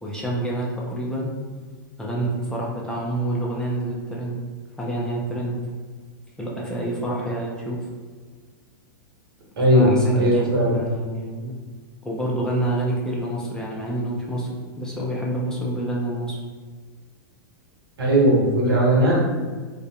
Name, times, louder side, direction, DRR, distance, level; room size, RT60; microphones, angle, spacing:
voice 1, 0.0-1.3 2.0-4.4 4.8-5.6 6.4-7.9 9.7-11.6 12.0-14.5 14.8-16.4 19.0-19.1, right 1 dB, 5° left, -4 dB, 0.3 m, -27 dB
voice 2, 9.6-10.8 18.0-19.2, right 1 dB, 85° right, -4 dB, 1.0 m, -18 dB
2.4 x 2.1 x 2.7 m, 1.4 s
hypercardioid pair, 140°, 12 cm